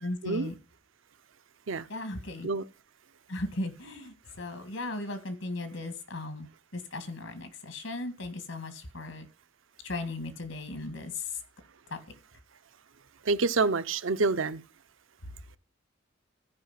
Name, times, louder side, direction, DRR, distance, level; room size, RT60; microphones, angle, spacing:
voice 1, 0.0-0.5 1.9-2.5 3.3-6.5 6.7-9.3 9.8-11.1 11.9-12.0, left 2 dB, 85° left, 1.9 m, -37 dB
voice 2, 13.3-14.6, right 3 dB, 80° right, 0.7 m, -27 dB
14.5 x 5.1 x 5.7 m
head